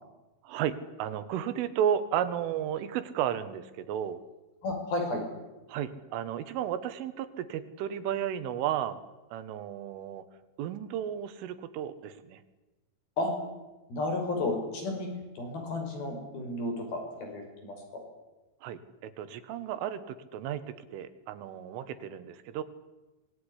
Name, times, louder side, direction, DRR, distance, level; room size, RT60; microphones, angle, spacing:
voice 1, 0.4-4.2 5.7-9.0 9.3-10.3 10.6-12.4 18.6-22.6, right 9 dB, 85° right, 12 dB, 4.0 m, -33 dB
voice 2, 4.6-5.2 13.2-13.3 13.9-15.1 15.4-18.0, left 2 dB, 50° left, 4 dB, 7.1 m, -32 dB
25.0 x 20.5 x 10.0 m, 1.1 s
omnidirectional pair, 5.5 m